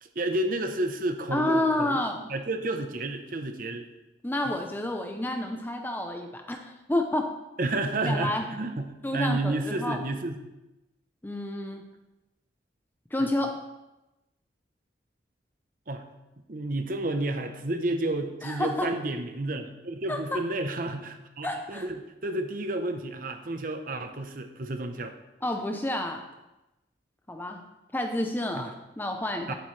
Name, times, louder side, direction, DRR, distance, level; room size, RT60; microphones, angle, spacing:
voice 1, 0.0-2.0 2.3-3.9 4.5-4.6 7.6-10.4 15.9-16.0 16.5-25.1 28.6-28.7 29.5-29.6, right 2 dB, 50° right, 7 dB, 0.9 m, -31 dB
voice 2, 1.3-2.3 4.2-7.3 8.1-8.5 9.0-10.0 11.2-11.9 13.1-13.5 18.4-18.9 20.1-20.2 21.4-21.8 25.4-26.2 27.3-27.6 27.9-29.5, left 1 dB, 10° left, 4 dB, 0.6 m, -29 dB
11.0 x 8.5 x 3.3 m, 0.97 s
head